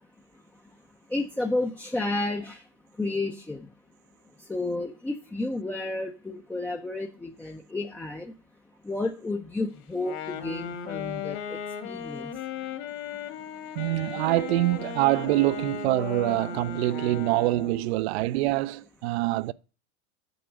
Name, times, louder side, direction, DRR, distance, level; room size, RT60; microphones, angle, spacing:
voice 1, 1.1-2.6 3.0-3.7 4.5-8.3 8.8-11.6 11.8-12.3, left 2 dB, 5° left, 0.4 m, -31 dB
Wind instrument woodwind instrument, 9.9-17.9, left 8 dB, 55° left, 1.7 m, -36 dB
voice 2, 13.8-19.5, right 18 dB, 70° right, 0.5 m, -25 dB
7.9 x 4.7 x 5.0 m
supercardioid pair, 130°, 34 cm